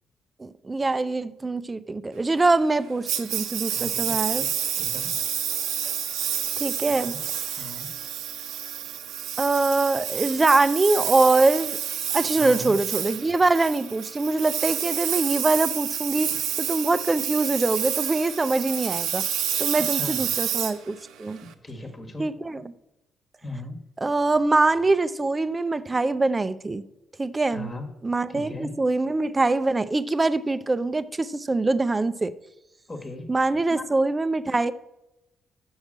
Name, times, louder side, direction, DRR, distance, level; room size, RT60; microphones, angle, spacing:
voice 1, 0.4-4.4 6.6-7.1 9.4-11.8 12.1-16.3 16.6-19.2 19.6-21.4 22.2-22.6 24.0-26.8 27.2-27.7 28.0-32.3 33.3-34.7, right 2 dB, 25° right, 0.5 m, -23 dB
Engine, 3.1-21.5, right 9 dB, 85° right, 0.7 m, -29 dB
voice 2, 3.7-4.5 4.8-5.1 6.9-7.2 7.5-7.9 12.3-12.8 19.7-20.2 21.4-22.3 23.4-23.8 27.5-27.9 28.3-28.7 32.9-33.3 33.7-33.8, left 2 dB, 25° left, 1.3 m, -38 dB
6.5 x 6.4 x 7.4 m
cardioid pair, 90°, 0 cm